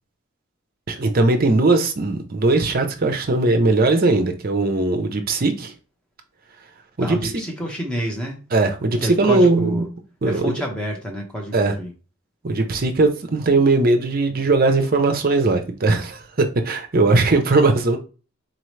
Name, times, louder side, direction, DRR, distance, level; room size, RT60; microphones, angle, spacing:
voice 1, 0.9-5.7 7.0-7.2 8.5-9.8 10.2-10.5 11.5-11.7 12.4-18.0, right 3 dB, 40° right, 0.6 m, -19 dB
voice 2, 7.0-8.4 9.0-9.9 10.2-11.9, equal, 5° left, 0.8 m, -28 dB
4.0 x 2.9 x 3.2 m
head